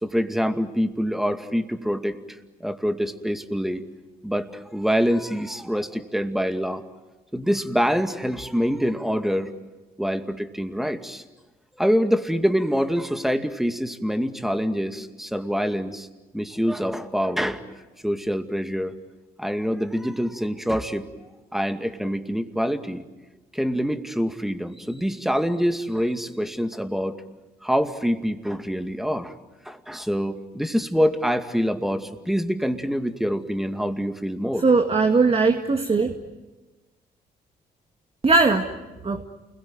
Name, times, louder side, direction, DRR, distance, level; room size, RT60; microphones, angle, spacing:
voice 1, 0.0-3.8 4.2-6.8 7.3-9.5 10.0-11.2 11.8-16.1 16.3-17.6 18.0-19.0 19.4-23.0 23.5-27.2 27.6-29.3 29.6-34.6, equal, ahead, 7 dB, 2.4 m, -25 dB
voice 2, 34.6-36.2 38.2-38.7 39.0-39.2, right 4 dB, 35° right, 5 dB, 2.1 m, -19 dB
29.0 x 22.0 x 9.2 m, 1.1 s
supercardioid pair, 60°, 17 cm